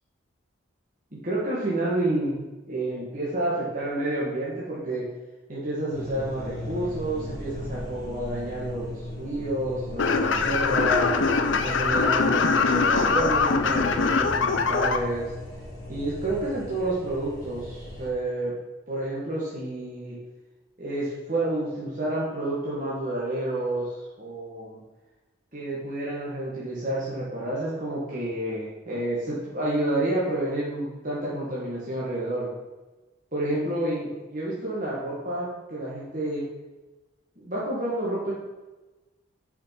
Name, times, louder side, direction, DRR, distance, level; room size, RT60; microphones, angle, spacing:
voice 1, 1.1-5.1 5.5-11.2 11.6-15.3 15.9-18.5 18.9-20.2 20.8-24.8 25.5-32.5 33.3-36.5 37.4-38.3, right 1 dB, 40° right, -7 dB, 1.7 m, -29 dB
sound 1, 5.9-18.1, left 1 dB, 20° left, 2.0 m, -37 dB
sound 2, 10.0-15.0, left 4 dB, 70° left, 0.7 m, -23 dB
6.7 x 5.6 x 5.8 m, 1.1 s
head